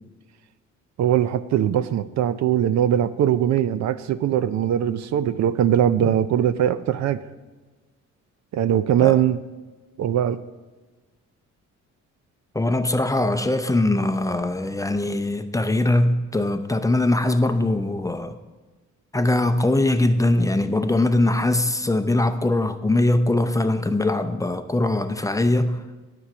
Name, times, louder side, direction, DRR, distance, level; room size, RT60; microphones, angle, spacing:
voice 1, 1.0-7.2 8.5-9.4 10.0-10.4, right 10 dB, 65° right, 0.5 m, -21 dB
voice 2, 12.5-18.3 19.1-25.8, left 2 dB, 10° left, 0.6 m, -21 dB
9.8 x 7.2 x 6.1 m
cardioid pair, 90°, 30 cm